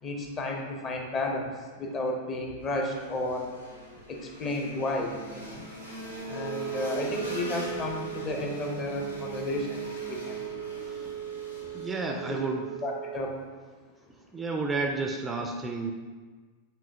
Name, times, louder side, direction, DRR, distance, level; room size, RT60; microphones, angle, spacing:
voice 1, 0.0-3.5 4.1-5.7 6.3-10.5 11.6-11.7 12.1-12.2 12.8-13.4, left 2 dB, 30° left, 2 dB, 0.6 m, -33 dB
sound 1, 2.6-12.4, equal, 80° left, 0.8 m, -42 dB
Wind instrument woodwind instrument, 6.2-13.4, right 10 dB, 60° left, 1.0 m, -38 dB
voice 2, 11.7-12.7 14.3-15.9, right 3 dB, 15° right, 2 dB, 0.3 m, -31 dB
7.1 x 2.8 x 2.5 m, 1.4 s
figure-of-eight pair, 90°, 0 cm